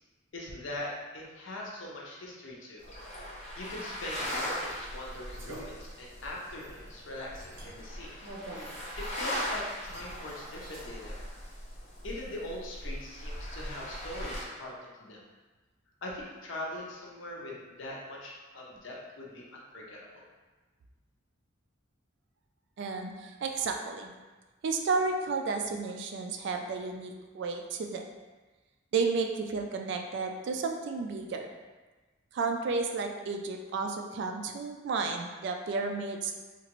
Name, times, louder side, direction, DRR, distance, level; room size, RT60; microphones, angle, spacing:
voice 1, 0.3-2.9 3.6-8.1 9.0-11.2 12.0-15.2 16.0-20.3, left 1 dB, 70° left, -3 dB, 0.7 m, -41 dB
sound 1, 2.8-14.4, equal, 35° left, 0.6 m, -39 dB
sound 2, 4.5-10.8, right 1 dB, 85° right, 0.7 m, -50 dB
voice 2, 22.8-24.1 24.6-28.0 28.9-31.5 32.3-36.4, right 4 dB, 60° right, 4 dB, 0.3 m, -32 dB
2.9 x 2.4 x 3.0 m, 1.3 s
head